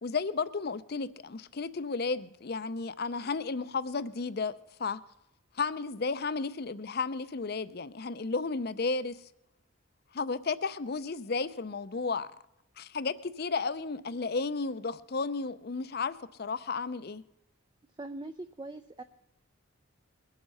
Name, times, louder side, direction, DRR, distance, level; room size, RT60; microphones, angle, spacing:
voice 1, 0.0-4.5 4.8-5.0 5.6-9.2 10.1-12.3 12.8-17.2, left 4 dB, 45° left, 0.5 m, -33 dB
voice 2, 18.0-19.0, right 2 dB, 20° right, 0.4 m, -41 dB
21.5 x 7.9 x 5.6 m
head